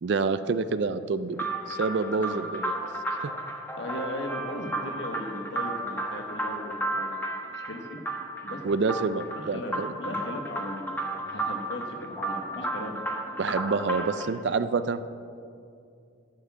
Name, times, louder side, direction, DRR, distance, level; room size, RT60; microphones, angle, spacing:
voice 1, 0.0-2.8 3.2-3.3 8.6-9.9 13.4-15.0, right 4 dB, 60° right, 12 dB, 0.4 m, -28 dB
sound 1, 1.3-14.3, right 1 dB, 10° left, 1.1 m, -33 dB
voice 2, 1.9-2.4 3.8-7.2 7.5-8.0 8.4-8.6 9.3-13.0, left 1 dB, 70° left, 3 dB, 1.4 m, -37 dB
13.0 x 5.9 x 7.3 m, 2.4 s
head